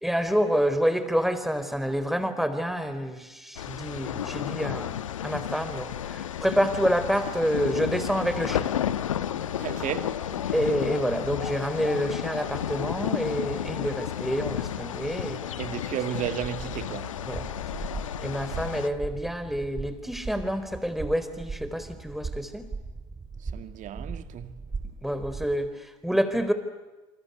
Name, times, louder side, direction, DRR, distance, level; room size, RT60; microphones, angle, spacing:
voice 1, 0.0-8.7 10.5-15.7 17.3-17.4 18.2-22.7 25.0-26.5, equal, ahead, 4.1 m, -28 dB
sound 1, 3.6-18.9, left 10 dB, 85° left, 1.1 m, -32 dB
voice 2, 9.6-10.5 15.6-17.2 23.4-24.5, right 10 dB, 50° right, 2.3 m, -34 dB
sound 2, 16.5-25.7, right 4 dB, 25° right, 3.8 m, -39 dB
28.0 x 25.0 x 8.2 m
hypercardioid pair, 70°, 16 cm